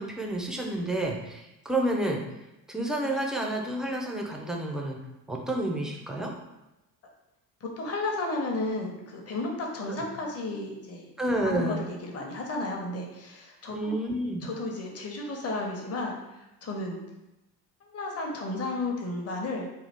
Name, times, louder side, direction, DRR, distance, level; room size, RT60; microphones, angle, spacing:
voice 1, 0.0-2.2 2.7-5.0 5.3-6.3 9.9-10.0 11.2-11.9 13.7-14.5, right 1 dB, ahead, 0 dB, 0.4 m, -30 dB
voice 2, 7.6-11.1 11.4-14.0 14.4-16.2 16.6-17.0 17.8-19.7, left 2 dB, 30° left, 0 dB, 0.9 m, -33 dB
3.9 x 2.4 x 3.4 m, 0.95 s
figure-of-eight pair, 50°, 49 cm